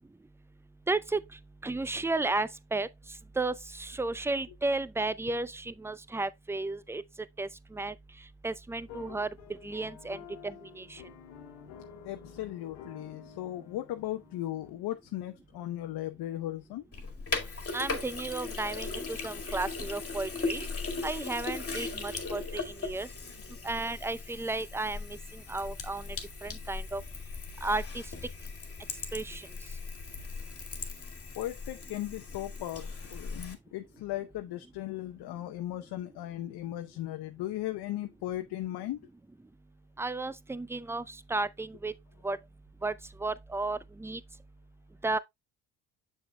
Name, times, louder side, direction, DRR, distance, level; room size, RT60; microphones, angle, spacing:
voice 1, 0.9-1.2 1.6-2.9 3.4-7.0 7.4-7.9 8.4-9.3 9.6-10.2 10.4-11.0 17.7-20.7 21.0-23.1 23.6-26.2 26.4-27.0 27.6-28.0 29.1-29.5 40.0-41.9 42.2-42.4 42.8-42.9 43.2-44.2 45.0-45.2, right 2 dB, 5° right, 0.5 m, -33 dB
sound 1, 8.8-14.7, left 6 dB, 80° left, 1.4 m, -50 dB
voice 2, 12.0-16.8 31.4-39.0, left 14 dB, 60° left, 0.8 m, -37 dB
Sink (filling or washing), 16.9-33.5, left 4 dB, 30° left, 1.9 m, -38 dB
7.1 x 6.9 x 2.2 m
hypercardioid pair, 60°, 43 cm